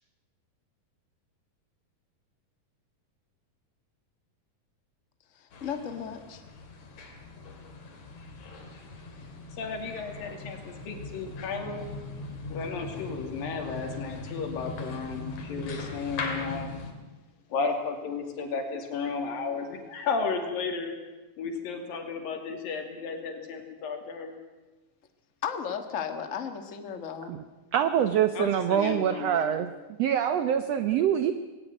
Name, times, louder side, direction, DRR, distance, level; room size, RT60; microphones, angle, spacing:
voice 1, 5.3-6.4 25.4-27.3, left 7 dB, 35° left, 7 dB, 1.3 m, -35 dB
sound 1, 5.5-16.9, left 3 dB, 55° left, 3.7 m, -40 dB
voice 2, 9.6-11.9 12.5-16.7 17.5-21.0 21.4-24.3 28.3-29.6, left 5 dB, 80° left, 4 dB, 4.3 m, -33 dB
voice 3, 27.7-29.7 30.0-31.3, right 9 dB, 90° right, 10 dB, 1.4 m, -25 dB
19.5 x 18.0 x 9.2 m, 1.2 s
omnidirectional pair, 4.0 m